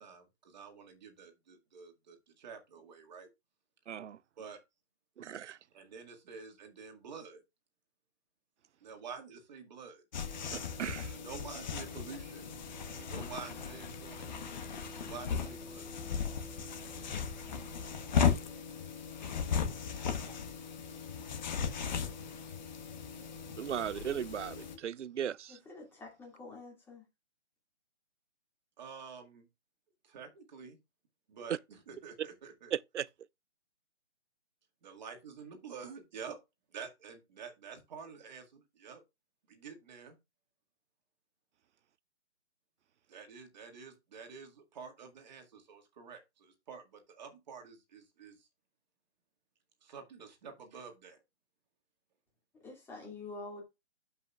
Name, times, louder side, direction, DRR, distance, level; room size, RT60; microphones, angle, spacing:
voice 1, 0.0-3.3 4.4-4.6 5.7-7.4 8.8-10.0 11.2-12.5 12.9-15.9 28.8-29.5 30.0-30.8 31.3-32.7 34.8-36.4 36.7-39.0 39.5-40.2 43.1-48.5 49.8-51.2, right 6 dB, 40° right, 2.0 m, -49 dB
voice 2, 3.9-4.2 5.2-5.6 10.5-11.2 23.6-25.6 32.7-33.1, right 9 dB, 80° right, 0.5 m, -37 dB
sound 1, 10.1-24.8, left 6 dB, 40° left, 1.3 m, -36 dB
voice 3, 25.5-27.0 52.6-53.6, left 3 dB, 5° left, 2.3 m, -47 dB
12.0 x 5.5 x 2.4 m
figure-of-eight pair, 150°, 35 cm